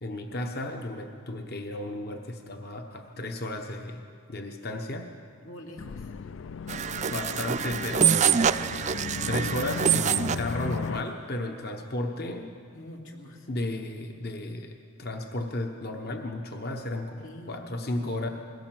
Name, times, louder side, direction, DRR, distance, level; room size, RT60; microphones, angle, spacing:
voice 1, 0.0-5.1 7.1-8.5 9.2-12.5 13.5-18.3, left 1 dB, 50° left, 4 dB, 1.0 m, -34 dB
voice 2, 5.4-5.9 12.7-13.4 17.2-17.6 17.8-18.3, left 1 dB, 85° left, 1 dB, 2.8 m, -45 dB
sound 1, 5.8-11.0, left 5 dB, 70° left, 0.4 m, -36 dB
sound 2, 6.7-10.5, right 8 dB, 35° right, 0.4 m, -25 dB
21.5 x 17.0 x 7.6 m, 2.4 s
head